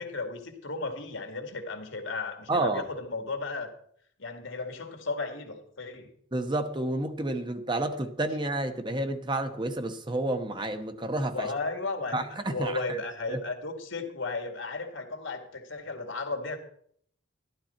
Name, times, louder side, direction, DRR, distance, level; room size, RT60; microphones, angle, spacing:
voice 1, 0.0-3.7 4.2-6.1 11.3-16.6, left 3 dB, 80° left, 5 dB, 2.0 m, -34 dB
voice 2, 2.5-2.8 6.3-11.5 12.1-13.0 13.3-13.4, right 2 dB, 25° right, 8 dB, 0.9 m, -30 dB
12.5 x 12.0 x 4.4 m, 0.64 s
head